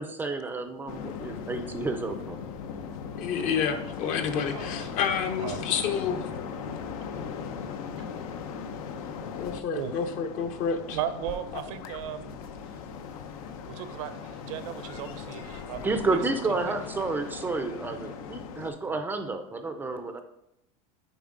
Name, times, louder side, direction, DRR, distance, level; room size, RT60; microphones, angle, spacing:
voice 1, 0.0-2.4 15.8-20.2, right 3 dB, 10° right, 7 dB, 0.4 m, -30 dB
sound 1, 0.9-18.7, left 6 dB, 80° left, 0.7 m, -38 dB
voice 2, 3.2-6.3 9.4-11.0, left 7 dB, 45° left, 7 dB, 0.7 m, -29 dB
voice 3, 4.5-4.9 5.4-5.6 8.0-8.1 9.7-10.0 10.9-12.4 13.7-16.2 16.7-16.8 17.9-18.1 18.9-19.0, right 10 dB, 65° right, 11 dB, 0.6 m, -36 dB
7.0 x 4.7 x 3.7 m, 0.83 s
supercardioid pair, 150°, 18 cm